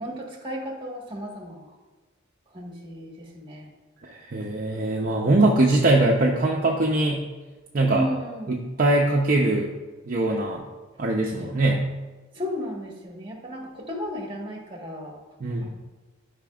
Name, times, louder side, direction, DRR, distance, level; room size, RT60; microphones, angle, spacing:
voice 1, 0.0-1.7 2.5-3.7 7.9-8.5 12.3-15.2 15.6-15.7, equal, 25° right, 0 dB, 1.3 m, -34 dB
voice 2, 4.0-7.2 7.7-8.1 8.5-9.7 10.1-10.6 11.0-11.9 15.4-15.7, right 2 dB, 40° right, -1 dB, 0.6 m, -22 dB
12.0 x 5.1 x 2.3 m, 1.2 s
head